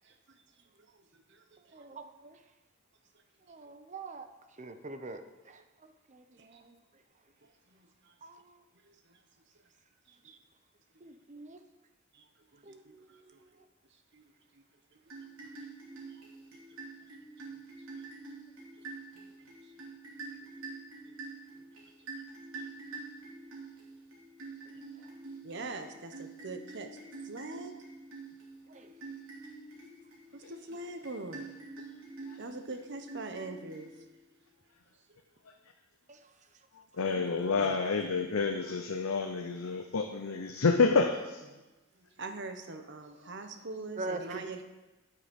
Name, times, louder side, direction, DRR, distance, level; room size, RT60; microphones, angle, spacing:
voice 1, 0.0-1.8 3.7-3.8 5.5-5.6 6.4-6.6 7.4-8.1 8.8-9.2 10.1-10.2 12.1-13.4 14.1-14.6 14.9-15.0 15.4-15.6 16.1-16.2 17.4-17.6 18.0-18.1 19.1-19.7 20.3-20.4 21.0-21.2 21.5-21.6 22.5-22.7 22.9-23.0 25.4-27.0 27.2-27.7 30.3-31.5 32.4-34.1 37.6-37.8 41.5-41.6 41.9-44.6, right 3 dB, 55° right, 7 dB, 1.0 m, -44 dB
voice 2, 1.7-2.4 3.5-4.3 4.6-5.2 6.1-6.2 6.5-6.6 8.2-8.3 11.0-11.6 12.7-12.8 28.7-28.9 44.0-44.4, right 3 dB, 35° right, 8 dB, 0.7 m, -42 dB
sound 1, 15.1-34.3, right 3 dB, 75° right, 2.9 m, -47 dB
voice 3, 37.0-41.4, left 4 dB, 80° left, 4 dB, 0.7 m, -29 dB
9.8 x 8.5 x 5.3 m, 1.1 s
head